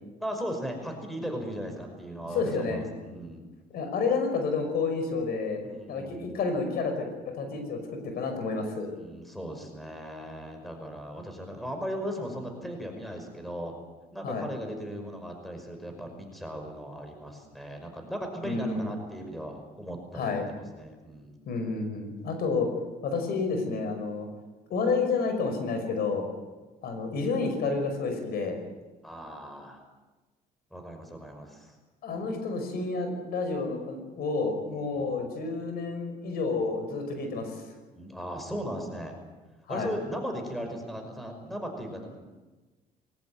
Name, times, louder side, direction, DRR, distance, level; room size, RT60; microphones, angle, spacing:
voice 1, 0.2-3.4 5.6-6.3 8.9-13.7 14.1-21.4 29.0-29.8 30.7-31.7 32.1-32.3 34.9-35.2 37.9-39.2 39.7-42.2, equal, ahead, 4 dB, 5.5 m, -37 dB
voice 2, 2.3-2.9 3.7-5.6 5.9-8.9 14.2-14.5 18.4-18.9 20.1-20.5 21.5-22.7 23.0-24.3 24.7-26.3 26.8-28.6 32.0-37.5 39.7-39.9, left 4 dB, 65° left, 6 dB, 5.6 m, -30 dB
21.0 x 18.5 x 9.4 m, 1.2 s
cardioid pair, 110°, 17 cm